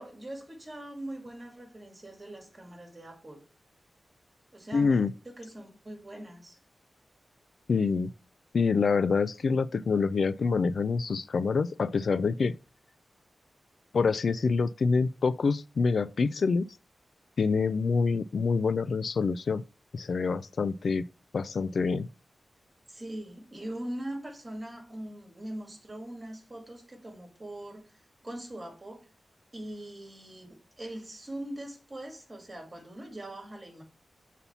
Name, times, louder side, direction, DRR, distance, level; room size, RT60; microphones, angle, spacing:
voice 1, 0.0-3.4 4.5-6.6 22.9-27.8 28.2-29.0 29.5-33.8, right 1 dB, 25° right, 2.2 m, -41 dB
voice 2, 4.7-5.1 7.7-8.1 8.5-12.5 13.9-16.7 17.4-19.6 19.9-21.1 21.3-22.1, left 4 dB, 65° left, 0.3 m, -26 dB
7.0 x 4.1 x 5.5 m
wide cardioid pair, 160°, 0 cm